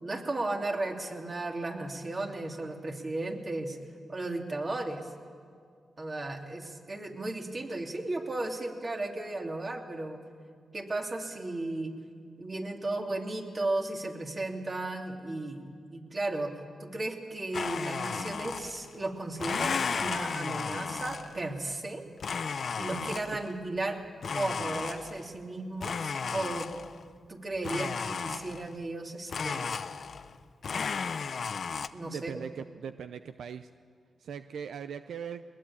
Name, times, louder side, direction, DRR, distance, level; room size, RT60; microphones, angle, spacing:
voice 1, 0.0-3.8 4.1-5.1 6.0-10.2 10.7-11.9 12.4-22.1 22.8-24.0 24.3-26.7 27.3-29.8 31.9-32.4, right 2 dB, 40° right, 1 dB, 3.1 m, -35 dB
Domestic sounds home sounds, 17.5-19.0 19.4-21.5 22.2-23.5 24.2-25.3 25.8-27.0 27.6-28.8 29.3-30.4 30.6-31.9, left 5 dB, 60° left, 0.8 m, -34 dB
voice 2, 32.0-33.7 34.2-35.4, right 7 dB, 80° right, 10 dB, 0.6 m, -40 dB
21.0 x 21.0 x 8.7 m, 2.2 s
cardioid pair, 65°, 0 cm